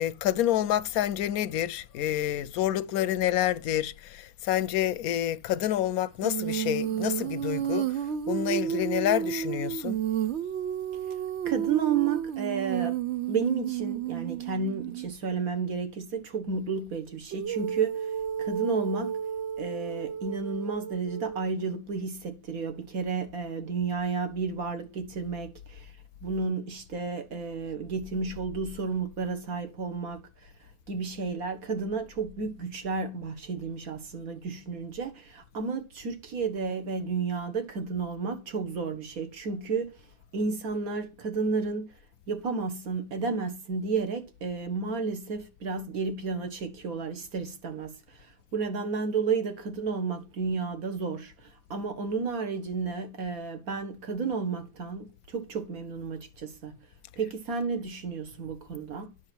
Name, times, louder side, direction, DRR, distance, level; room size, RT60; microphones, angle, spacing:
voice 1, 0.0-7.9 8.3-10.0, left 12 dB, 70° left, 0.9 m, -28 dB
Female singing, 6.2-15.1 17.3-21.5, right 10 dB, 85° right, 0.6 m, -32 dB
voice 2, 11.5-13.0 13.3-18.1 18.4-19.2 19.6-25.9 26.2-30.5 30.9-40.1 40.3-41.9 42.3-56.7 57.2-59.1, right 5 dB, 55° right, 1.8 m, -32 dB
9.6 x 6.3 x 4.4 m
omnidirectional pair, 1.8 m